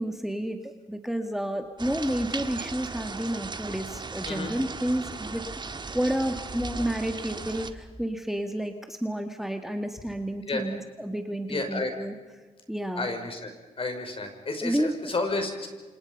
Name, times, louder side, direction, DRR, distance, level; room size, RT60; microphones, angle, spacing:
voice 1, 0.0-5.4 5.9-12.1 12.7-13.1 14.6-14.9, right 1 dB, ahead, 6 dB, 1.9 m, -30 dB
Rain facing drain pipe ortf, 1.8-7.7, right 4 dB, 35° right, 1.8 m, -37 dB
voice 2, 11.5-11.9 12.9-13.5 13.8-15.7, left 3 dB, 45° left, 5 dB, 5.9 m, -31 dB
29.0 x 26.5 x 5.5 m, 1.3 s
cardioid pair, 75°, 14 cm